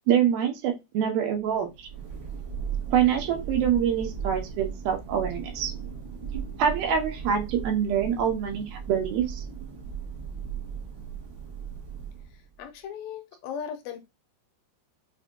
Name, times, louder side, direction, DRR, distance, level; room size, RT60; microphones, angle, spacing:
voice 1, 0.1-1.9 2.9-5.7 6.6-9.4, right 8 dB, 90° right, 2.7 m, -25 dB
Thunder, 1.5-12.6, right 7 dB, 70° right, 1.2 m, -37 dB
voice 2, 12.6-14.0, left 7 dB, 80° left, 2.3 m, -37 dB
6.1 x 2.2 x 2.6 m
omnidirectional pair, 4.3 m